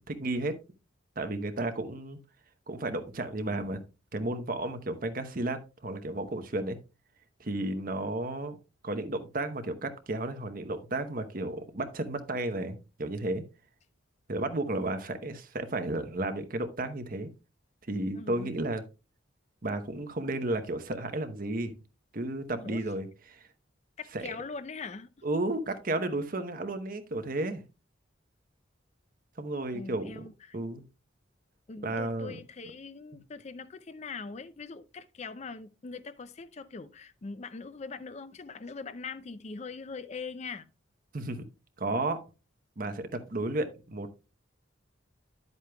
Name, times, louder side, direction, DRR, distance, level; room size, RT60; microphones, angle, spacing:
voice 1, 0.1-0.6 1.2-2.2 2.7-3.8 4.1-6.8 7.4-8.6 8.8-13.4 14.3-17.3 17.9-18.8 19.6-21.7 22.1-23.5 24.1-24.3 25.2-27.6 29.4-30.2 30.5-30.8 31.8-32.4 41.1-41.4 41.8-42.2 42.8-44.1, right 2 dB, 45° right, 0.9 m, -33 dB
voice 2, 18.1-18.5 22.5-22.8 24.0-25.1 29.7-30.6 31.7-40.7, left 4 dB, 35° left, 0.5 m, -42 dB
10.5 x 8.1 x 2.3 m
head